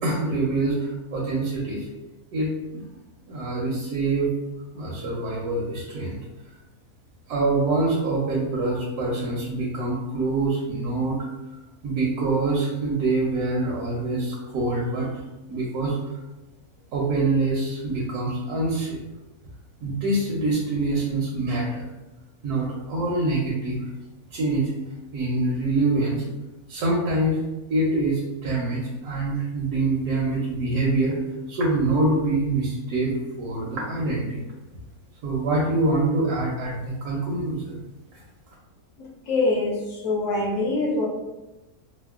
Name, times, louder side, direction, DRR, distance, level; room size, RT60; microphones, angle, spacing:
voice 1, 0.0-1.9 2.3-2.8 3.3-4.3 4.7-6.2 7.3-11.2 11.8-15.1 15.5-16.0 16.9-19.0 19.8-21.8 22.4-23.8 24.3-24.7 25.1-26.2 26.7-27.4 27.7-31.2 31.5-34.4 35.2-37.8, right 2 dB, 80° right, -4 dB, 1.2 m, -25 dB
voice 2, 39.3-41.1, left 2 dB, 60° left, -3 dB, 1.1 m, -24 dB
4.3 x 2.0 x 2.3 m, 1.0 s
omnidirectional pair, 1.6 m